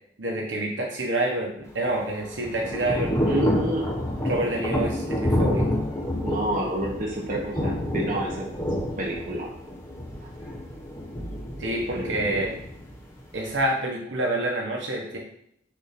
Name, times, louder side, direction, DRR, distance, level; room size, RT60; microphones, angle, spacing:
voice 1, 0.2-3.1 4.2-5.7 11.6-12.6 13.3-15.2, right 1 dB, 80° right, -1 dB, 1.5 m, -27 dB
Thunder / Rain, 1.7-13.6, left 1 dB, 20° left, 1.4 m, -29 dB
voice 2, 3.2-3.9 6.2-9.5 11.9-12.5, right 1 dB, 50° right, -2 dB, 1.4 m, -29 dB
7.0 x 2.9 x 5.9 m, 0.71 s
head